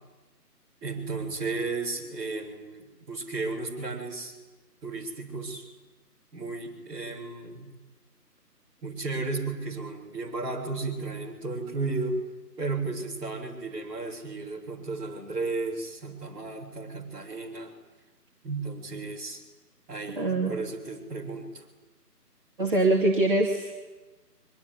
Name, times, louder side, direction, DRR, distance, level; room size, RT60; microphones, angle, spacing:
voice 1, 0.8-4.3 4.8-5.7 6.3-7.7 8.8-12.2 12.6-17.7 18.4-19.4 19.9-21.6, right 3 dB, 10° right, -8 dB, 4.7 m, -34 dB
voice 2, 20.2-20.5 22.6-23.7, right 2 dB, 30° right, -2 dB, 2.5 m, -23 dB
24.0 x 23.5 x 9.9 m, 1.2 s
figure-of-eight pair, 155°, 48 cm